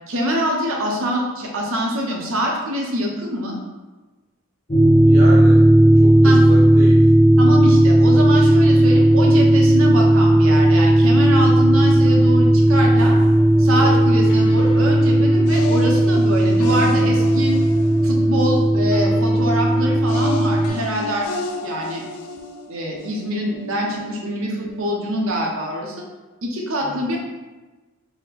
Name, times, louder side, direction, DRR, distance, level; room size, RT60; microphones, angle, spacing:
voice 1, 0.1-3.6 6.2-6.4 7.4-13.2 13.6-17.5 18.0-21.3 21.6-22.0 22.7-26.0 26.4-27.2, equal, 65° right, -1 dB, 0.8 m, -24 dB
sound 1, 4.7-20.7, right 1 dB, 25° left, 0.6 m, -14 dB
voice 2, 5.0-5.7 6.0-7.1 26.8-27.2, right 1 dB, 40° right, -3 dB, 0.3 m, -31 dB
sound 2, 13.0-25.7, left 2 dB, 90° left, 0.4 m, -34 dB
4.2 x 2.1 x 4.0 m, 1.2 s
head